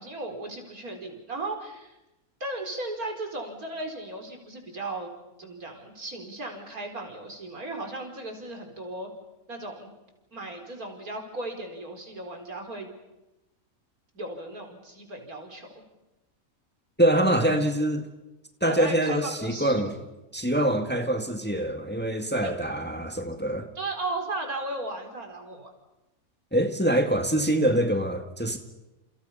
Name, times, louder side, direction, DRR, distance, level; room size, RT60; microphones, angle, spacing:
voice 1, 0.0-2.0 2.4-5.1 5.4-9.1 9.5-9.9 10.3-12.9 14.1-15.7 17.4-17.7 18.7-19.8 22.4-22.5 23.7-25.7, right 2 dB, 85° right, 4.7 m, -36 dB
voice 2, 17.0-18.1 18.6-19.9 20.3-23.7 26.5-28.6, right 1 dB, 5° left, 1.9 m, -24 dB
29.5 x 29.5 x 5.7 m
omnidirectional pair, 1.5 m